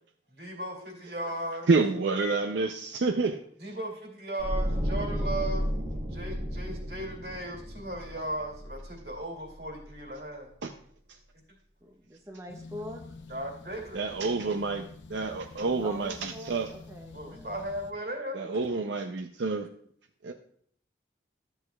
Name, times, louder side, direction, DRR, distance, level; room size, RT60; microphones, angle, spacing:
voice 1, 0.3-1.7 3.6-5.8 6.1-10.5 13.3-14.0 17.1-18.8, right 1 dB, 55° right, 0 dB, 2.4 m, -37 dB
voice 2, 1.7-3.4 10.6-10.7 13.9-16.7 18.3-19.7 20.2-20.3, right 3 dB, 75° right, 6 dB, 0.5 m, -28 dB
sound 1, 4.4-9.5 9.8-10.0, equal, 40° right, 1.8 m, -33 dB
voice 3, 11.8-13.1 15.8-17.5 18.5-18.6, left 1 dB, 15° right, 1 dB, 0.6 m, -44 dB
sound 2, 12.5-17.9, left 3 dB, 80° left, 0.7 m, -48 dB
12.5 x 7.8 x 2.3 m, 0.62 s
head